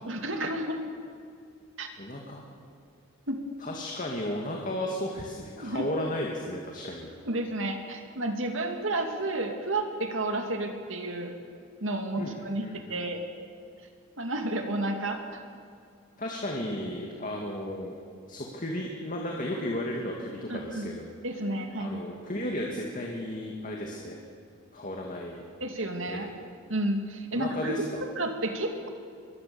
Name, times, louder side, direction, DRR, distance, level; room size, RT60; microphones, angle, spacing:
voice 1, 0.1-0.8 1.8-1.9 3.3-3.4 5.6-5.9 7.3-11.3 11.8-12.6 12.9-13.2 14.2-15.4 20.5-20.9 21.2-22.0 25.6-26.3 26.7-27.7 28.0-28.9, right 1 dB, 70° right, 4 dB, 2.5 m, -31 dB
voice 2, 2.0-2.4 3.6-7.1 12.2-13.0 16.2-18.0 18.3-21.1 21.8-24.2 24.7-25.4 26.1-26.2 27.3-28.0, left 1 dB, 40° left, 0 dB, 2.4 m, -34 dB
24.5 x 21.5 x 7.1 m, 2.3 s
head